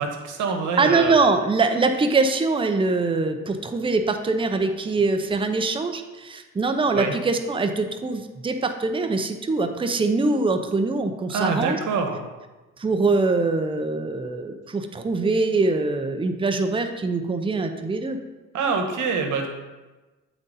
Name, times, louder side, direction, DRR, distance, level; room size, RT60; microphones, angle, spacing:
voice 1, 0.0-1.1 6.9-7.1 11.3-12.2 18.5-19.5, right 5 dB, 80° right, 4 dB, 1.1 m, -25 dB
voice 2, 0.8-11.8 12.8-18.2, right 3 dB, 15° right, 6 dB, 0.6 m, -23 dB
8.7 x 4.0 x 4.0 m, 1.2 s
cardioid pair, 90°, 30 cm